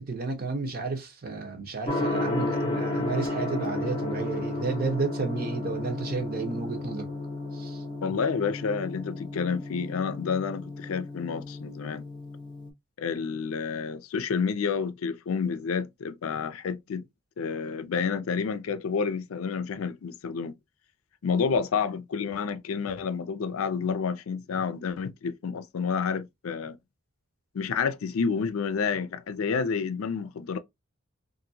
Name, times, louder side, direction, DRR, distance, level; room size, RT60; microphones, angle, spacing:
voice 1, 0.0-7.1 7.5-7.8, right 3 dB, 45° right, 0.8 m, -32 dB
Gong, 1.9-12.7, left 2 dB, 25° left, 0.6 m, -33 dB
voice 2, 8.0-12.0 13.0-17.0 17.4-20.5 21.2-26.8 27.5-30.6, left 5 dB, 90° left, 0.4 m, -29 dB
2.8 x 2.5 x 2.7 m
head